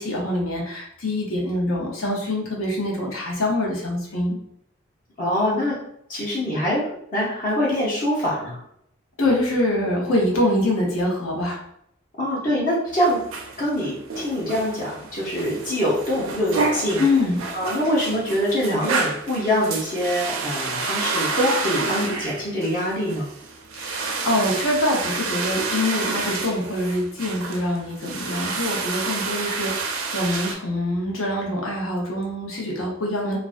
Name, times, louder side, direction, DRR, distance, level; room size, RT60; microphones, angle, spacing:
voice 1, 0.0-4.4 9.2-11.6 17.0-17.4 23.8-33.4, left 1 dB, 85° left, -2 dB, 0.7 m, -24 dB
voice 2, 5.2-5.8 6.1-8.6 12.2-13.2 13.6-17.0 17.5-23.3, equal, 40° left, -6 dB, 0.7 m, -24 dB
sound 1, 12.9-30.5, right 4 dB, 80° right, 0.4 m, -29 dB
2.4 x 2.1 x 2.4 m, 0.72 s
head